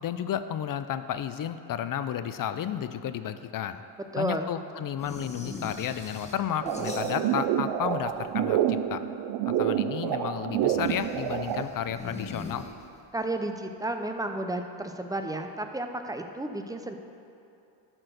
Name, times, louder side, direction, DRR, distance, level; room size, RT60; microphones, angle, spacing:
voice 1, 0.0-3.8 4.2-9.0 9.5-12.6, left 9 dB, 50° left, 11 dB, 0.5 m, -32 dB
voice 2, 4.1-4.5 13.1-17.0, right 1 dB, 10° right, 6 dB, 0.5 m, -32 dB
sound 1, 5.0-7.6 7.8-8.7 10.6-13.2, left 2 dB, 15° left, 1.0 m, -41 dB
sound 2, 6.6-11.6, right 10 dB, 85° right, 0.6 m, -28 dB
11.5 x 4.5 x 6.5 m, 2.7 s
cardioid pair, 110°, 45 cm